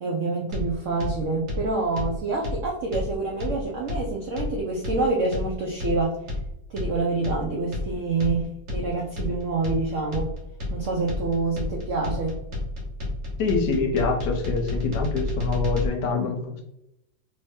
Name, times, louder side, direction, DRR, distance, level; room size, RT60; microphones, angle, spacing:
voice 1, 0.0-6.2 6.7-10.4 10.7-12.4, right 3 dB, 85° right, -1 dB, 0.6 m, -27 dB
sound 1, 0.5-15.9, left 2 dB, 45° right, 1.1 m, -31 dB
voice 2, 13.4-16.6, left 4 dB, 70° left, 3 dB, 1.1 m, -25 dB
3.1 x 2.6 x 3.5 m, 0.83 s
omnidirectional pair, 2.1 m